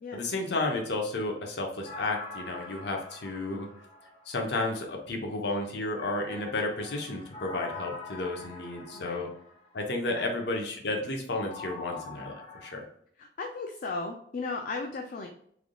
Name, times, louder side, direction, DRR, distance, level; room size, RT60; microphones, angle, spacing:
voice 1, 0.1-3.7 4.3-9.3 9.7-12.8, left 2 dB, 65° left, 2 dB, 0.8 m, -32 dB
sound 1, 1.8-4.7 6.0-9.8 11.4-12.8, left 3 dB, 30° left, 1.2 m, -44 dB
voice 2, 8.9-9.3 10.1-10.3 13.2-15.3, left 3 dB, 50° left, 4 dB, 0.4 m, -36 dB
3.7 x 3.4 x 2.3 m, 0.66 s
head